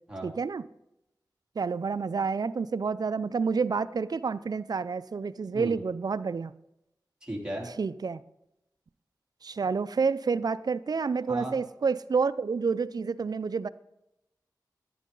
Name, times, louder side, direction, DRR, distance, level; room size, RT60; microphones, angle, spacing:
voice 1, 0.2-0.6 1.6-6.5 7.8-8.2 9.4-13.7, right 5 dB, 60° right, 15 dB, 0.4 m, -29 dB
voice 2, 7.2-7.7 11.3-11.5, right 1 dB, 10° right, -3 dB, 3.4 m, -35 dB
11.0 x 9.2 x 3.9 m, 0.85 s
cardioid pair, 40°, 8 cm